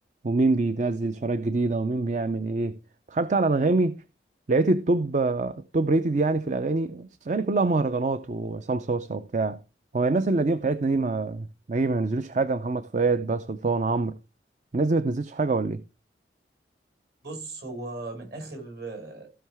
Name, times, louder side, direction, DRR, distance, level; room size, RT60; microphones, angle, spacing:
voice 1, 0.2-2.8 3.1-4.0 4.5-9.6 9.9-14.2 14.7-15.8, right 3 dB, 40° right, 0.5 m, -25 dB
voice 2, 17.2-19.3, right 2 dB, 60° right, 5.6 m, -37 dB
16.0 x 5.5 x 3.5 m
head